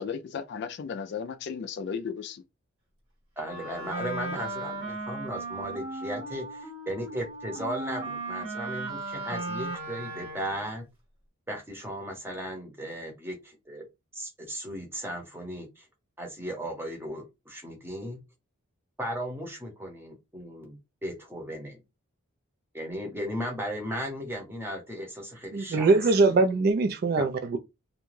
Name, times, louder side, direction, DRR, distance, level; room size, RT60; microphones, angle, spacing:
voice 1, 0.0-2.4, left 6 dB, 55° left, 0.3 m, -35 dB
voice 2, 3.4-10.9 11.5-13.8 14.1-15.9 16.2-18.2 19.0-21.8 22.7-25.9 26.2-26.4 27.2-27.3, equal, 10° right, 0.8 m, -36 dB
Wind instrument woodwind instrument, 3.4-10.7, right 2 dB, 75° right, 1.4 m, -36 dB
voice 3, 25.5-27.6, right 3 dB, 45° right, 0.3 m, -22 dB
2.5 x 2.2 x 3.1 m
head